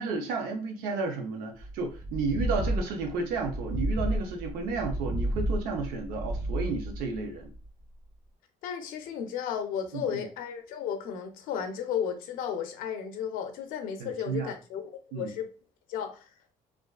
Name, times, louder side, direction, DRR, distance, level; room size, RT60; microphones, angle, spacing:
voice 1, 0.0-7.5 9.9-10.3 14.0-14.5 15.1-15.3, right 4 dB, 90° right, 0.5 m, -32 dB
sound 1, 1.6-7.7, right 1 dB, 40° right, 1.2 m, -32 dB
voice 2, 8.6-15.5 15.9-16.2, left 8 dB, 75° left, 0.4 m, -34 dB
2.4 x 2.3 x 2.3 m
cardioid pair, 130°, 15 cm